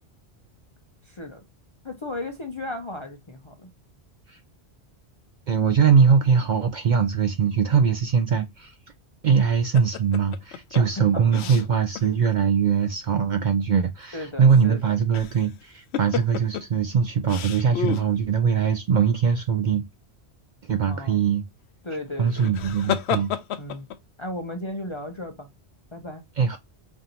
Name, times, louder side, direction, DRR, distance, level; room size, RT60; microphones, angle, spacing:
voice 1, 1.0-1.4 1.8-3.7 10.8-11.6 14.1-15.0 20.9-21.3 21.8-22.5 23.6-23.9 24.2-25.5 25.9-26.2, left 1 dB, 40° left, 0.5 m, -35 dB
voice 2, 5.5-8.7 9.2-19.8 20.6-21.4 22.2-23.3 26.4-26.6, right 6 dB, 55° right, 0.5 m, -21 dB
sound 1, 9.7-12.1 12.4-12.5 14.9-15.5 15.9-16.6 17.3-18.1 22.2-24.0, left 8 dB, 75° left, 0.8 m, -30 dB
5.4 x 2.5 x 2.8 m
omnidirectional pair, 1.2 m